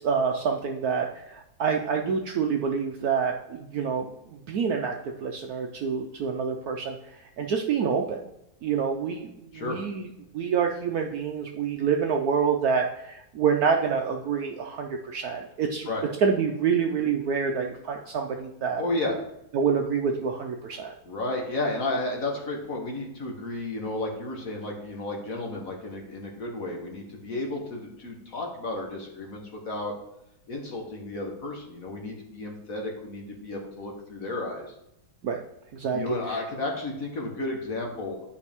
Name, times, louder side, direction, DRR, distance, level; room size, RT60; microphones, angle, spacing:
voice 1, 0.0-4.9 5.2-7.0 7.4-8.2 8.6-10.1 10.3-15.9 16.2-18.8 19.5-20.9 35.2-35.4 35.7-36.0 36.3-36.4, right 6 dB, 70° right, 2 dB, 0.9 m, -27 dB
voice 2, 18.8-19.2 21.0-29.9 30.5-34.7 35.9-38.2, left 2 dB, 50° left, 1 dB, 1.5 m, -32 dB
11.0 x 5.1 x 3.5 m, 0.81 s
omnidirectional pair, 2.1 m